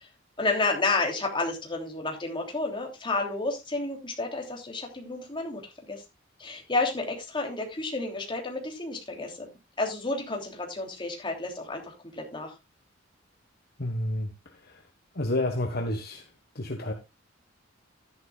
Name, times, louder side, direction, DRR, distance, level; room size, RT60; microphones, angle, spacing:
voice 1, 0.4-6.0 6.4-9.5 9.8-12.5, left 3 dB, 25° left, 3.2 m, -31 dB
voice 2, 13.8-14.3 15.1-16.2 16.5-16.9, left 1 dB, 50° left, 1.5 m, -29 dB
13.0 x 10.5 x 2.4 m
head